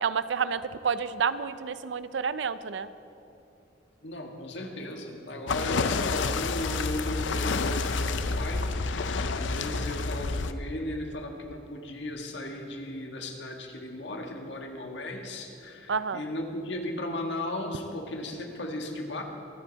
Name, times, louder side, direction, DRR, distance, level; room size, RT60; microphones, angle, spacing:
voice 1, 0.0-2.9 15.9-16.2, right 6 dB, 80° right, 14 dB, 0.5 m, -29 dB
voice 2, 4.0-19.2, left 1 dB, 75° left, 3 dB, 1.7 m, -36 dB
sound 1, 5.5-10.5, left 3 dB, 90° left, 0.6 m, -29 dB
24.0 x 9.1 x 4.0 m, 2.8 s
head